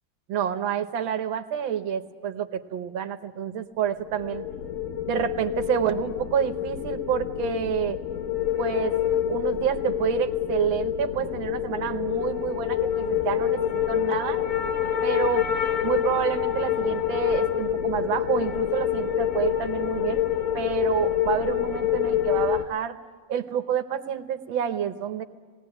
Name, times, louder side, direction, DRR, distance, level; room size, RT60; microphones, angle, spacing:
voice 1, 0.3-4.4 5.1-8.0 8.6-9.0 9.3-14.4 15.0-15.4 15.8-20.3 20.5-23.0 23.3-25.2, right 9 dB, 90° right, 10 dB, 1.8 m, -28 dB
sound 1, 4.0-22.7, left 10 dB, 55° left, 1.0 m, -27 dB
18.0 x 18.0 x 10.0 m, 1.5 s
omnidirectional pair, 2.1 m